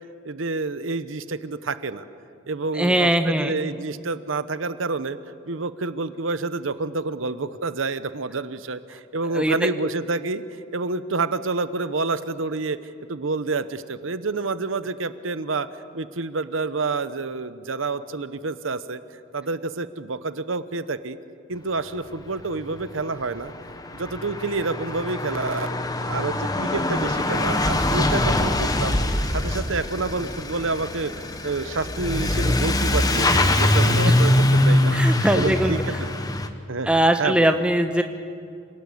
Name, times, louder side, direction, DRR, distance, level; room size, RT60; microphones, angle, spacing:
voice 1, 0.2-2.0 2.5-5.2 5.5-10.4 10.7-12.8 13.1-15.7 15.9-19.0 19.3-21.2 21.5-23.5 23.9-25.7 26.1-29.0 29.3-35.0 35.3-36.0 36.7-36.9 37.2-37.5, right 3 dB, 85° right, 13 dB, 0.9 m, -28 dB
voice 2, 2.7-3.5 9.3-9.7 34.0-34.1 34.9-35.8 36.8-38.0, right 1 dB, 5° right, 6 dB, 1.2 m, -21 dB
Truck / Accelerating revving vroom, 22.8-22.9 23.1-36.5, left 1 dB, 20° left, 1.2 m, -23 dB
27.5 x 18.0 x 8.5 m, 2.4 s
head